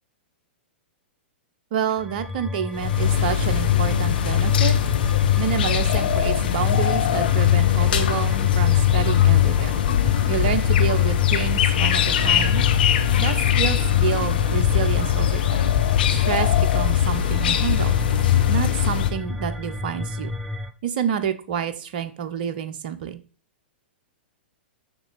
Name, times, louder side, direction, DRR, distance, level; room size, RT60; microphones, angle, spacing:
voice 1, 1.7-4.7 5.4-9.7 10.3-12.6 13.2-15.7 16.1-17.9 18.5-20.3 20.8-23.2, right 8 dB, 45° right, 9 dB, 0.9 m, -28 dB
sound 1, 2.0-20.7, left 2 dB, 5° right, 0.7 m, -32 dB
sound 2, 2.8-19.1, left 11 dB, 55° left, 1.1 m, -20 dB
6.6 x 6.2 x 4.8 m, 0.38 s
figure-of-eight pair, 105°, 6 cm